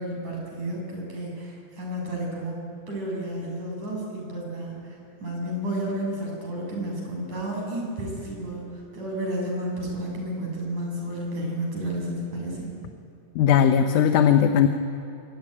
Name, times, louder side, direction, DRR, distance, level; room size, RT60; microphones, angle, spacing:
voice 1, 0.0-2.6 2.9-12.7, right 1 dB, 60° right, -1 dB, 8.5 m, -31 dB
voice 2, 13.4-14.7, left 8 dB, 70° left, 7 dB, 2.3 m, -18 dB
24.5 x 24.0 x 9.9 m, 2.8 s
omnidirectional pair, 3.9 m